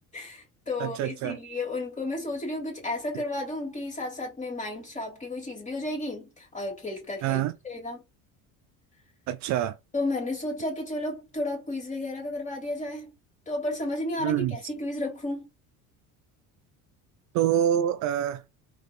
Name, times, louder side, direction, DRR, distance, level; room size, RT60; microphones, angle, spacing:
voice 1, 0.1-8.0 9.9-13.1 13.5-15.4, left 2 dB, 20° left, 2.6 m, -33 dB
voice 2, 0.8-1.4 3.1-3.2 7.2-7.5 9.3-9.8 14.2-14.6 17.3-18.4, right 11 dB, 55° right, 0.5 m, -26 dB
4.1 x 3.0 x 3.5 m
cardioid pair, 135°, 34 cm